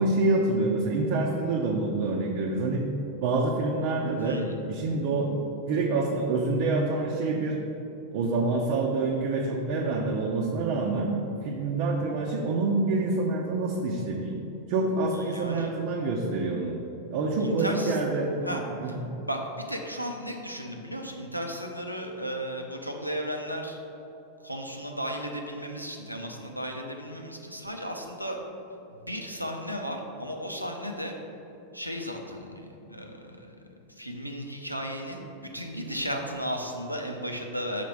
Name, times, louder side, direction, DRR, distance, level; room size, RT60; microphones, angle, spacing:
voice 1, 0.0-2.8 3.2-4.4 4.7-7.6 8.1-11.1 11.4-14.4 14.7-16.8 17.1-18.9, right 3 dB, 45° right, -2 dB, 0.6 m, -27 dB
voice 2, 4.2-4.6 15.1-15.7 17.4-18.0 18.4-19.0 19.2-23.8 24.4-28.4 28.9-31.1 31.7-33.6 33.9-37.8, equal, 90° right, 2 dB, 0.6 m, -35 dB
5.8 x 4.1 x 4.6 m, 2.9 s
figure-of-eight pair, 90°, 0 cm